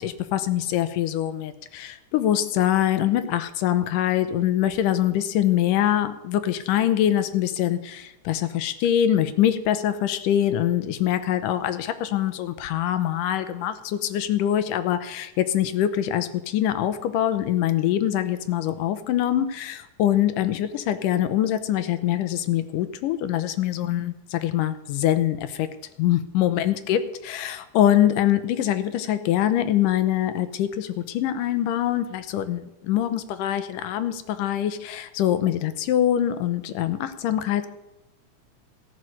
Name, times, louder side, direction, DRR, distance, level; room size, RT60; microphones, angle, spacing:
voice 1, 0.0-25.7 26.0-37.7, left 11 dB, 85° left, 11 dB, 2.4 m, -24 dB
14.5 x 6.4 x 9.4 m, 0.88 s
omnidirectional pair, 3.7 m